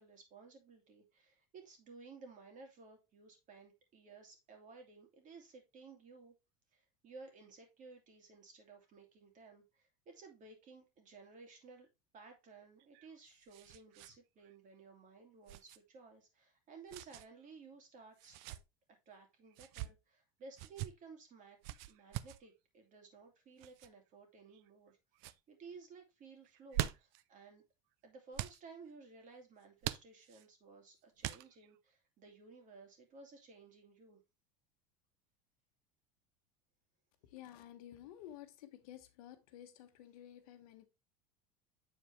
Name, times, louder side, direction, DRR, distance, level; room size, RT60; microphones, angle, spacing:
voice 1, 0.0-6.3 6.7-11.9 12.1-18.4 19.1-21.6 21.9-25.0 25.5-27.6 28.0-34.2, right 4 dB, 45° right, 2.5 m, -56 dB
sound 1, 12.8-14.1 14.4-14.5 15.5-15.8 16.9-17.3 18.2-18.6 19.5-19.9 20.6-20.9 21.6-22.4 23.6-23.9 24.5-24.9 25.2-25.4 26.5-27.2 28.3-28.6 29.8-30.5 31.2-31.7, right 15 dB, 65° right, 0.5 m, -42 dB
voice 2, 37.2-40.9, left 12 dB, 80° left, 1.1 m, -53 dB
7.6 x 4.5 x 3.2 m
supercardioid pair, 100°, 19 cm